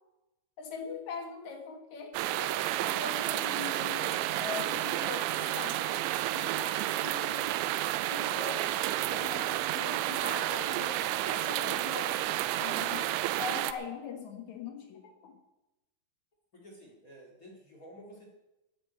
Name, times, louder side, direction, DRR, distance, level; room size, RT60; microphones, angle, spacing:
voice 1, 0.6-7.5 8.1-15.4, left 6 dB, 60° left, 5 dB, 2.0 m, -42 dB
sound 1, 2.1-13.7, right 15 dB, 85° right, 2.9 m, -31 dB
voice 2, 16.5-18.3, equal, 35° left, -1 dB, 1.4 m, -51 dB
12.5 x 8.3 x 8.4 m, 0.98 s
omnidirectional pair, 5.3 m